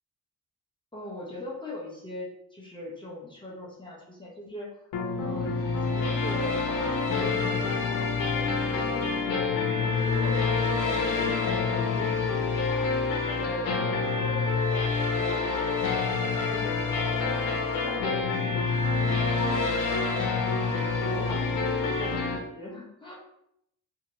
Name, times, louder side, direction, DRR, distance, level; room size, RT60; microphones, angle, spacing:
voice 1, 0.9-4.9 5.2-9.2 9.7-15.6 16.1-17.5 17.8-20.6 21.0-23.2, left 1 dB, 15° left, -4 dB, 0.7 m, -42 dB
sound 1, 4.9-22.4, left 4 dB, 75° left, 0.7 m, -27 dB
2.8 x 2.7 x 2.9 m, 0.75 s
cardioid pair, 95°, 34 cm